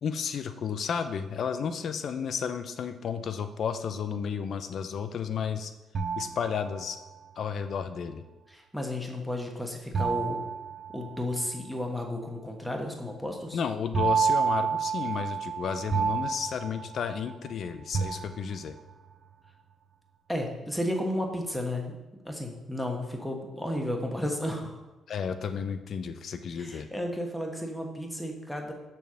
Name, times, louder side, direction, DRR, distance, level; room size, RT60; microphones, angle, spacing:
voice 1, 0.0-5.7 6.2-7.0 7.4-8.2 13.5-18.8 25.1-26.9, left 7 dB, 60° left, 10 dB, 0.5 m, -32 dB
sound 1, 5.9-7.2 9.9-11.6 13.9-17.5 17.9-18.9, right 6 dB, 50° right, 0.7 m, -30 dB
voice 2, 8.5-10.4 10.9-13.6 20.3-22.0 22.2-24.8 26.6-28.7, left 1 dB, 5° left, 2 dB, 1.2 m, -33 dB
6.9 x 3.4 x 6.2 m, 1.1 s
cardioid pair, 90°, 0 cm